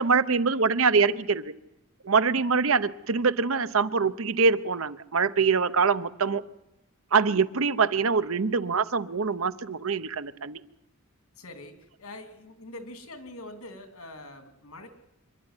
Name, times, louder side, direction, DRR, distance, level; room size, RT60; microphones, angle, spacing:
voice 1, 0.0-1.5 2.0-6.4 7.1-10.6, right 5 dB, 65° right, 13 dB, 0.8 m, -24 dB
voice 2, 11.4-14.9, left 1 dB, 80° left, 7 dB, 2.9 m, -44 dB
25.5 x 11.5 x 9.7 m, 0.92 s
head